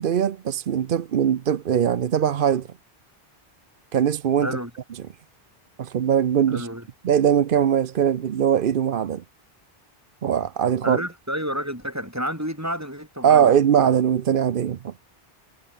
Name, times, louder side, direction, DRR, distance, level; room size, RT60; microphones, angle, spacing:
voice 1, 0.0-2.7 3.9-4.6 5.8-6.7 7.0-9.2 10.2-11.0 13.2-15.0, right 9 dB, 60° right, 0.8 m, -21 dB
voice 2, 6.5-6.8 10.8-13.5, equal, 15° right, 6.5 m, -30 dB
omnidirectional pair, 1.0 m